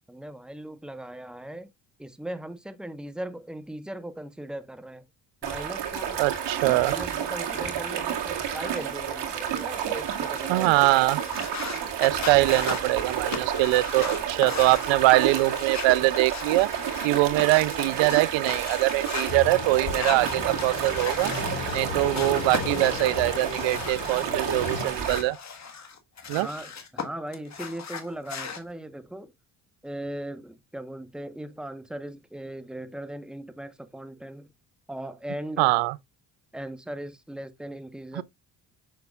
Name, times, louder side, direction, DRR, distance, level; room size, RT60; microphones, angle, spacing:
voice 1, 0.1-1.7 2.0-5.1 5.4-6.2 6.7-10.8 26.4-29.3 29.8-34.5 34.9-35.7 36.5-38.2, right 1 dB, ahead, 1.0 m, -38 dB
sound 1, 5.4-25.2, right 8 dB, 70° right, 2.1 m, -31 dB
voice 2, 6.2-6.9 10.5-11.2 12.0-16.7 17.0-21.3 21.7-25.4 26.3-26.5 35.6-35.9 38.2-38.3, right 19 dB, 90° right, 0.5 m, -23 dB
sound 2, 11.2-19.3 19.8-21.8 22.1-24.3 24.6-27.0 27.3-28.6, left 5 dB, 40° left, 1.5 m, -37 dB
sound 3, 19.3-24.9, left 5 dB, 85° left, 3.7 m, -35 dB
6.7 x 6.6 x 2.4 m
cardioid pair, 85°, 44 cm